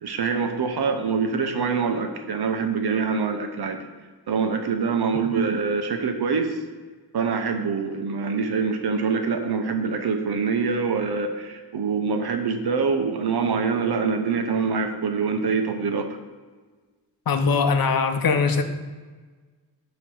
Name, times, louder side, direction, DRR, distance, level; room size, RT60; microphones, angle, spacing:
voice 1, 0.0-3.8 4.3-6.5 7.1-16.1, right 5 dB, 70° right, 5 dB, 0.9 m, -25 dB
voice 2, 17.3-18.6, left 5 dB, 60° left, 7 dB, 0.7 m, -21 dB
8.9 x 3.1 x 6.3 m, 1.4 s
wide cardioid pair, 130°, 40 cm